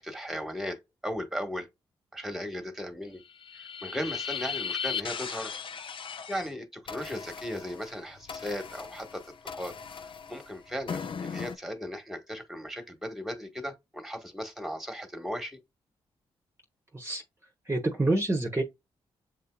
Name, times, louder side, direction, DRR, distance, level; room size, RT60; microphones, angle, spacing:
voice 1, 0.0-1.7 2.1-3.2 3.5-5.5 6.3-9.7 10.3-15.6, equal, ahead, 1.4 m, -37 dB
sound 1, 3.2-6.5 6.9-11.6, left 6 dB, 50° left, 0.6 m, -37 dB
voice 2, 16.9-18.6, right 2 dB, 20° right, 1.0 m, -28 dB
7.4 x 2.7 x 2.3 m
supercardioid pair, 50°, 11 cm